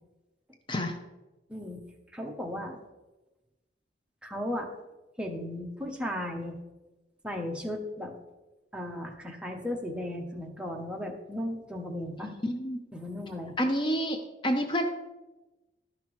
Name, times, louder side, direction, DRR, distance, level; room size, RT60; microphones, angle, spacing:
voice 1, 1.5-1.8 2.1-2.8 4.2-4.7 5.2-6.6 7.2-8.1 8.7-12.3 12.9-13.6, left 1 dB, 5° right, 1 dB, 0.8 m, -35 dB
voice 2, 12.2-12.8 13.6-14.2 14.4-14.9, equal, 30° left, 5 dB, 0.6 m, -28 dB
11.5 x 5.7 x 3.1 m, 1.1 s
head